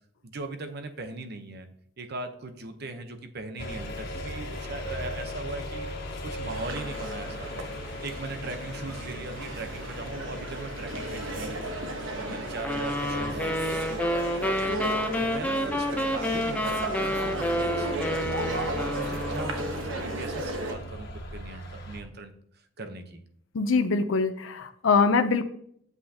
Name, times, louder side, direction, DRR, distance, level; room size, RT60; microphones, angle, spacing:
voice 1, 0.2-1.7 2.0-5.9 6.2-7.5 8.0-11.9 12.2-14.2 14.7-22.3 22.8-23.2, right 2 dB, 55° right, 7 dB, 0.9 m, -39 dB
sound 1, 3.6-22.0, left 1 dB, 55° left, 1.4 m, -39 dB
sound 2, 6.4-20.7, right 1 dB, 80° right, 1.2 m, -35 dB
sound 3, 12.6-19.8, left 1 dB, 10° left, 0.6 m, -29 dB
voice 2, 23.5-25.4, left 4 dB, 90° left, 7 dB, 0.6 m, -23 dB
8.1 x 7.8 x 2.8 m, 0.67 s
head